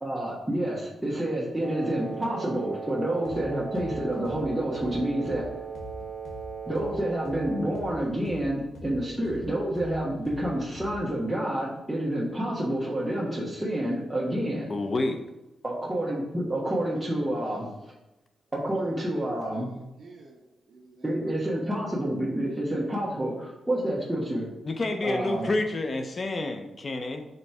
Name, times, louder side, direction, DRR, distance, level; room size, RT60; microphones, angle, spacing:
voice 1, 0.0-5.5 6.7-14.7 15.6-17.9 18.5-19.7 21.0-24.5 25.0-25.5, right 1 dB, 10° right, -7 dB, 1.4 m, -29 dB
Wind instrument woodwind instrument, 1.6-8.0, right 6 dB, 50° right, 1.0 m, -38 dB
sound 1, 3.2-3.4 3.7-7.4 7.7-11.2, left 3 dB, 90° left, 1.1 m, -44 dB
voice 2, 14.7-15.2 24.6-27.3, left 2 dB, 40° left, 6 dB, 0.6 m, -29 dB
voice 3, 18.6-21.7, right 3 dB, 65° right, -7 dB, 1.5 m, -52 dB
5.4 x 3.9 x 4.7 m, 0.98 s
cardioid pair, 70°, 0 cm